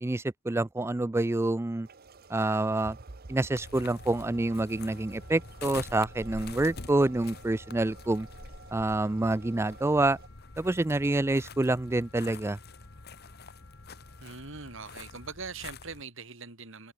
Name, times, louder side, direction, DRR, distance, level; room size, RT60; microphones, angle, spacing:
voice 1, 0.0-1.9 2.3-3.0 3.3-8.3 8.7-10.2 10.6-12.6, right 2 dB, 10° right, 0.3 m, -27 dB
sound 1, 1.8-10.3, right 3 dB, 45° right, 0.9 m, -51 dB
sound 2, 3.5-16.0, left 3 dB, 45° left, 1.4 m, -46 dB
Wind instrument woodwind instrument, 4.0-15.3, left 5 dB, 65° left, 7.7 m, -60 dB
voice 2, 14.2-16.9, right 4 dB, 60° right, 2.6 m, -42 dB
head